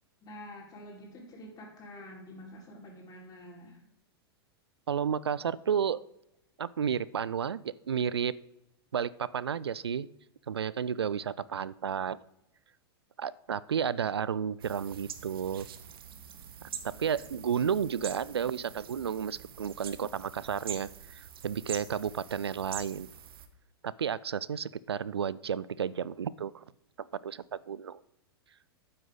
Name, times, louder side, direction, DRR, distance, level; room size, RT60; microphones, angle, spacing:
voice 1, 0.2-3.8, left 1 dB, 30° left, -2 dB, 4.6 m, -47 dB
voice 2, 4.9-6.1 6.6-8.3 8.9-10.1 10.5-12.2 13.2-15.7 16.8-23.1 23.8-26.6 27.0-28.0, right 7 dB, 80° right, 21 dB, 0.4 m, -32 dB
sound 1, 14.6-23.5, right 8 dB, 65° right, 1.2 m, -45 dB
12.0 x 9.6 x 3.9 m, 0.83 s
figure-of-eight pair, 100°, 13 cm